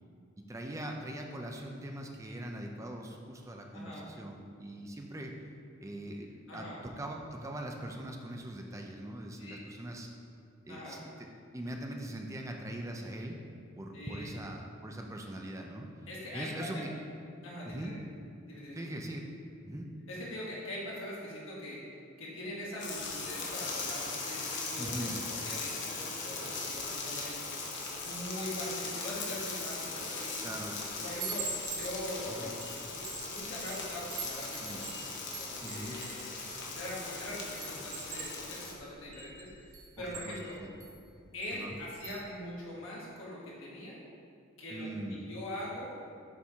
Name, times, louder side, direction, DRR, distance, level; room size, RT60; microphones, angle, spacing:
voice 1, 0.4-5.3 5.8-10.1 10.6-11.0 11.5-13.4 13.7-15.9 16.3-16.9 17.6-18.0 18.7-19.2 19.7-19.9 24.8-25.2 30.4-30.7 32.2-32.5 34.6-34.8 35.6-36.0 40.0-40.7 41.5-41.8 44.7-45.2, right 1 dB, 15° right, 2 dB, 0.4 m, -41 dB
voice 2, 3.7-4.1 6.5-6.8 9.4-9.6 10.7-11.0 13.9-14.3 16.1-16.8 17.4-18.0 18.4-18.9 20.1-21.8 22.2-27.7 28.0-30.4 31.0-35.0 35.4-36.4 36.7-40.6 41.3-44.0 44.6-46.0, left 1 dB, 75° left, -6 dB, 1.2 m, -42 dB
sound 1, 22.8-38.7, left 3 dB, 55° left, 0.9 m, -39 dB
Chime, 30.8-37.1 37.6-40.9 41.4-41.6 41.9-42.2, right 4 dB, 85° right, 0.9 m, -44 dB
7.0 x 3.5 x 4.4 m, 2.4 s
head